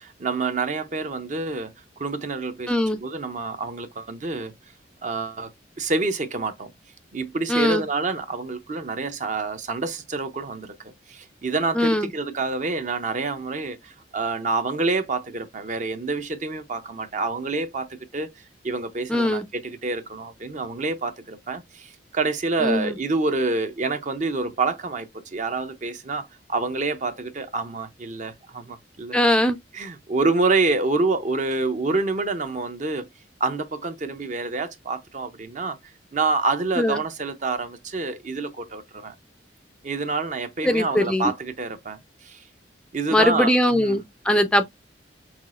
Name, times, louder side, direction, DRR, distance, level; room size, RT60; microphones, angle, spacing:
voice 1, 0.0-2.7 3.0-4.5 5.0-5.5 5.8-6.7 7.1-29.2 29.7-33.1 33.4-35.8 36.1-39.1 39.8-42.4 42.9-44.0, right 3 dB, 40° right, 0.6 m, -27 dB
voice 2, 2.7-3.0 7.5-7.8 11.7-12.1 19.1-19.4 22.6-23.0 29.1-29.6 36.8-37.0 40.6-41.3 43.1-44.7, left 1 dB, 5° left, 0.4 m, -21 dB
5.8 x 2.3 x 2.4 m
head